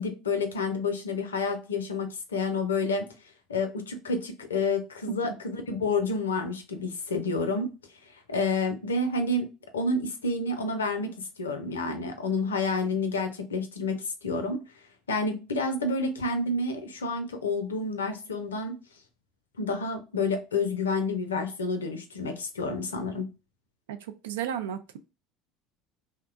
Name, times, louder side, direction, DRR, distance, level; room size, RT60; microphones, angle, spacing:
voice 1, 0.0-3.0 3.5-7.7 8.3-9.5 9.7-11.1 11.4-14.6 15.1-18.7 19.6-23.2, left 3 dB, 90° left, 0.5 m, -29 dB
voice 2, 23.9-25.0, right 9 dB, 75° right, 0.3 m, -33 dB
2.8 x 2.1 x 2.4 m
hypercardioid pair, 75°, 0 cm